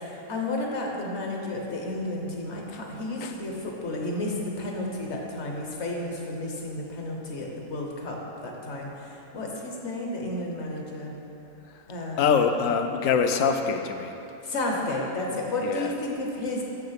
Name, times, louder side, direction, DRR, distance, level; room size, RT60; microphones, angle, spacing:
voice 1, 0.0-11.1 11.9-12.3 14.4-16.6, left 2 dB, 55° left, 0 dB, 1.3 m, -32 dB
voice 2, 12.2-14.2 15.6-15.9, left 6 dB, 75° left, 6 dB, 0.9 m, -24 dB
6.7 x 6.4 x 5.8 m, 2.9 s
omnidirectional pair, 1.5 m